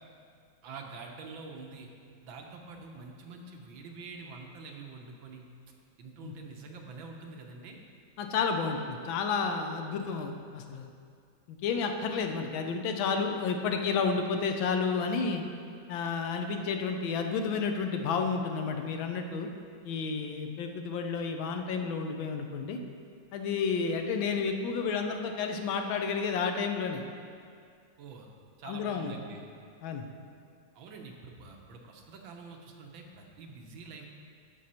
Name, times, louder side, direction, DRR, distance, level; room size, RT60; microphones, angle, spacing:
voice 1, 0.6-1.9 2.2-5.4 6.0-7.8 28.0-29.4 30.7-34.1, right 4 dB, 80° right, 1 dB, 1.7 m, -46 dB
voice 2, 8.2-10.9 11.5-15.4 15.9-19.5 19.8-22.8 23.3-27.0 28.6-29.1 29.8-30.1, left 5 dB, 85° left, 5 dB, 1.5 m, -31 dB
12.5 x 5.5 x 4.3 m, 2.3 s
omnidirectional pair, 2.1 m